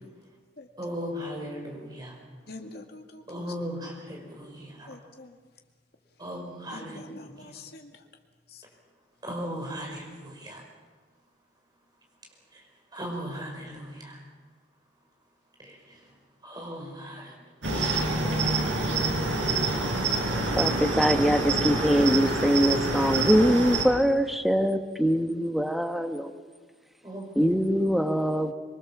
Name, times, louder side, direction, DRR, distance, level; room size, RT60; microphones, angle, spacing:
voice 1, 0.8-2.2 3.3-5.0 6.2-7.0 7.3-7.4 9.2-10.6 12.5-12.6 12.9-14.2 15.6-16.0 16.4-17.4 18.0-18.1 27.0-27.3, equal, 20° right, 0 dB, 5.3 m, -37 dB
voice 2, 2.5-3.4 4.9-5.3 6.7-7.9 8.5-8.6, left 2 dB, 55° left, 3 dB, 2.2 m, -44 dB
Cricket, 17.6-23.8, right 2 dB, 80° right, 5.4 m, -27 dB
voice 3, 20.5-26.3 27.3-28.5, equal, ahead, 6 dB, 1.2 m, -23 dB
24.5 x 23.0 x 7.3 m, 1.4 s
head